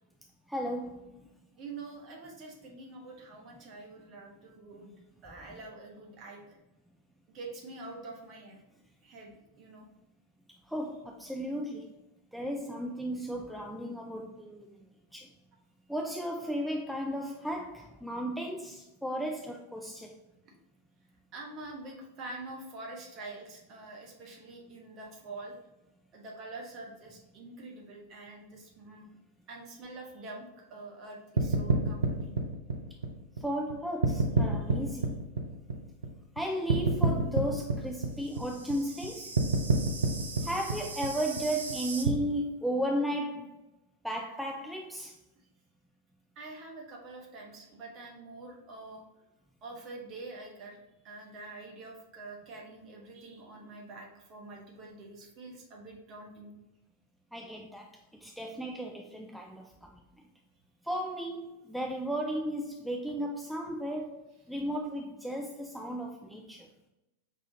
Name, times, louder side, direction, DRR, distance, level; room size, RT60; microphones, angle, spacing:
voice 1, 0.5-1.1 5.5-5.6 10.7-11.9 12.3-14.7 15.1-15.3 15.9-20.1 33.4-35.2 36.4-39.4 40.4-43.6 44.0-45.1 57.3-57.9 58.2-60.0 60.8-66.7, equal, ahead, 1 dB, 0.3 m, -35 dB
voice 2, 1.6-4.9 5.2-6.4 7.3-8.7 9.0-9.8 21.3-25.5 26.1-29.1 29.5-32.3 46.4-49.0 49.6-50.8 51.0-56.5, right 2 dB, 35° right, 0 dB, 1.0 m, -46 dB
sound 1, 31.4-33.7 34.0-36.4 36.7-42.1, right 4 dB, 70° right, 0.5 m, -29 dB
5.5 x 2.4 x 2.7 m, 0.95 s
figure-of-eight pair, 90°, 0 cm